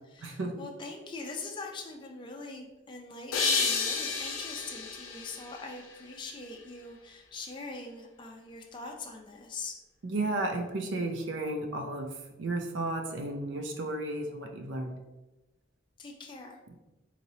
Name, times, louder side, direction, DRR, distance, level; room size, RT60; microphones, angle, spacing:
voice 1, 0.0-9.7 16.0-16.6, left 3 dB, 25° left, 1 dB, 0.4 m, -43 dB
sound 1, 3.3-6.5, left 5 dB, 85° left, 0.7 m, -31 dB
voice 2, 10.0-12.1 12.4-14.9, right 2 dB, 65° right, 3 dB, 0.5 m, -33 dB
3.9 x 3.0 x 2.7 m, 1.0 s
head